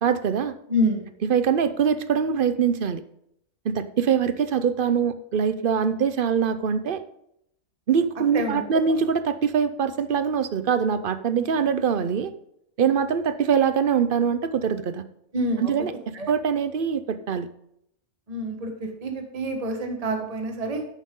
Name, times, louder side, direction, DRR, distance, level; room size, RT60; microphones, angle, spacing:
voice 1, 0.0-0.5 1.3-3.0 3.6-7.0 7.9-12.3 12.8-15.0 15.6-15.9 16.3-17.5, right 7 dB, 50° right, 12 dB, 0.7 m, -23 dB
voice 2, 0.7-1.1 8.3-8.6 15.3-15.7 16.1-16.3 18.3-20.9, equal, 25° right, 5 dB, 1.3 m, -27 dB
10.5 x 9.2 x 3.8 m, 0.76 s
omnidirectional pair, 1.6 m